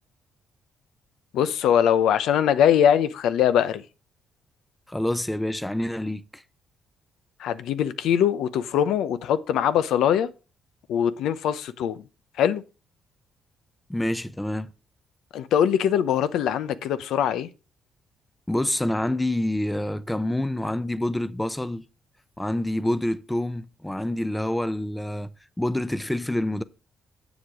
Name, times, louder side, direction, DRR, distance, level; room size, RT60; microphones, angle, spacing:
voice 1, 1.3-3.8 7.4-10.3 10.9-12.0 12.4-12.6 15.3-17.5, left 9 dB, 85° left, 0.7 m, -22 dB
voice 2, 4.9-6.4 13.9-14.7 18.5-21.8 22.4-25.3 25.6-26.6, left 1 dB, 10° left, 0.6 m, -27 dB
7.9 x 7.2 x 4.9 m
cardioid pair, 90°, 0 cm